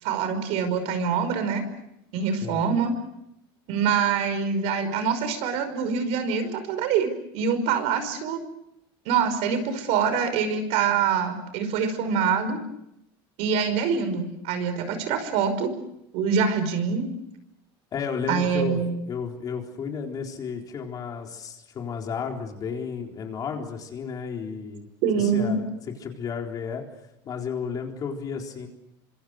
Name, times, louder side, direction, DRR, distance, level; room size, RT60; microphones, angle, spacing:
voice 1, 0.0-1.6 2.1-2.9 3.7-8.4 9.1-12.6 13.4-15.7 16.1-17.1 18.3-18.9 25.0-25.6, right 6 dB, 60° right, 10 dB, 5.5 m, -25 dB
voice 2, 17.9-24.9 25.1-25.7 26.0-26.8 27.2-28.7, left 6 dB, 30° left, 2 dB, 4.0 m, -33 dB
28.5 x 26.0 x 6.6 m, 0.81 s
cardioid pair, 155°, 13 cm